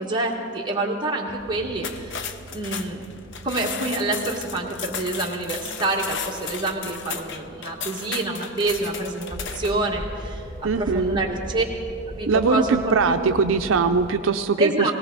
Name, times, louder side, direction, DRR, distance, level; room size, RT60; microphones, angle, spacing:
voice 1, 0.0-2.3 2.5-3.1 3.4-11.7 12.2-13.2 14.6-14.9, right 2 dB, 25° right, -2 dB, 1.9 m, -27 dB
sound 1, 1.3-14.1, right 1 dB, 10° left, 4.6 m, -40 dB
sound 2, 1.8-9.9, left 7 dB, 65° left, 0.8 m, -34 dB
voice 2, 10.6-11.2 12.3-14.9, right 4 dB, 80° right, 7 dB, 0.5 m, -21 dB
19.0 x 17.5 x 4.0 m, 2.3 s
head